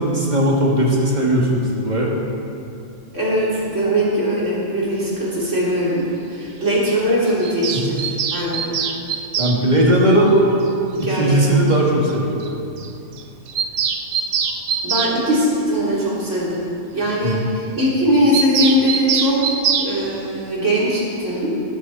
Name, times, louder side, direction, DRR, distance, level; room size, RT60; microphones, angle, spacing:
voice 1, 0.0-2.1 7.7-7.8 9.4-10.3 11.0-12.4 17.2-17.4, right 1 dB, 30° right, -3 dB, 2.5 m, -18 dB
voice 2, 3.1-8.8 10.0-10.4 11.0-11.5 14.8-16.6 16.9-19.4 19.8-21.5, equal, 55° right, -7 dB, 4.1 m, -20 dB
Bird vocalization bird call bird song, 7.4-9.6 11.0-11.1 11.3-11.4 11.7-11.8 12.1-12.2 12.4-12.5 12.8-12.9 13.2-15.1 18.3-19.9, right 7 dB, 85° right, 1.4 m, -23 dB
18.0 x 13.5 x 4.3 m, 2.6 s
omnidirectional pair, 1.5 m